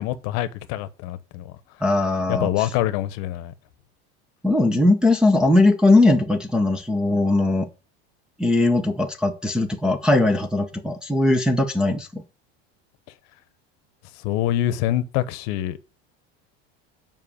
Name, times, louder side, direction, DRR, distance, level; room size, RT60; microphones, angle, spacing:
voice 1, 0.0-1.5 2.3-3.5 14.2-15.9, left 13 dB, 55° left, 1.0 m, -25 dB
voice 2, 1.8-2.7 4.4-7.7 8.4-12.2, left 2 dB, 5° right, 0.5 m, -19 dB
7.6 x 5.5 x 7.0 m
cardioid pair, 155°, 31 cm